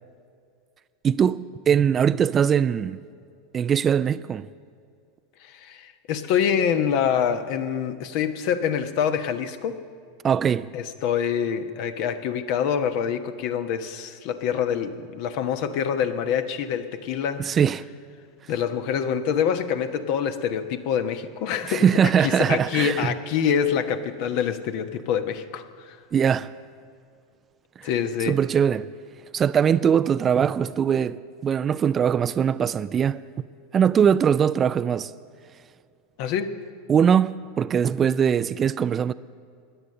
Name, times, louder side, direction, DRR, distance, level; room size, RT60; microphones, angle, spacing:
voice 1, 1.0-3.0 3.5-4.5 10.2-10.7 17.4-17.9 21.7-23.1 26.1-26.5 27.8-27.9 28.3-28.9 29.3-33.2 33.7-35.1 36.9-39.1, right 8 dB, 30° right, 0.4 m, -21 dB
voice 2, 5.4-9.8 10.7-17.6 18.5-21.8 22.2-26.0 27.8-28.4 36.2-36.5, left 8 dB, 60° left, 1.0 m, -26 dB
17.0 x 10.5 x 6.6 m
hypercardioid pair, 95°, 0 cm